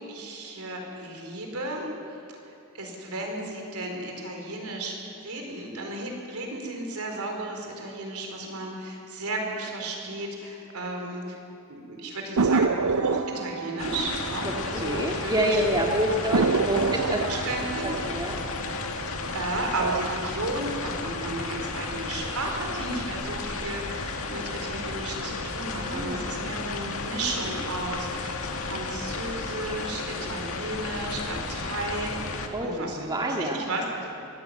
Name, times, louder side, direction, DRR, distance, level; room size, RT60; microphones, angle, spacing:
voice 1, 0.0-1.9 2.3-4.9 5.2-11.4 11.7-15.6 17.2-18.1 19.3-34.1, right 2 dB, 70° right, 2 dB, 4.6 m, -34 dB
sound 1, 12.4-15.4 15.7-15.8 16.3-19.3 19.7-20.3, right 4 dB, 90° right, 0.7 m, -28 dB
sound 2, 13.8-32.5, left 3 dB, 70° left, 2.0 m, -33 dB
voice 2, 14.5-16.8 17.1-17.4 17.8-18.4 25.8-26.3 32.5-33.6, equal, 20° right, 0 dB, 1.9 m, -27 dB
23.5 x 16.5 x 9.0 m, 2.8 s
head